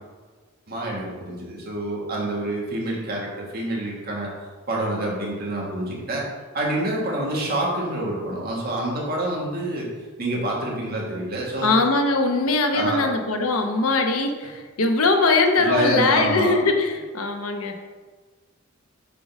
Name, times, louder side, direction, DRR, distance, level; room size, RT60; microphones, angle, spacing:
voice 1, 0.7-4.3 4.7-6.2 6.5-9.9 10.2-11.7 12.7-13.0 15.6-16.6, right 1 dB, 45° right, -3 dB, 1.5 m, -27 dB
voice 2, 11.6-17.8, left 3 dB, 75° left, 4 dB, 0.8 m, -21 dB
6.7 x 3.7 x 5.3 m, 1.4 s
head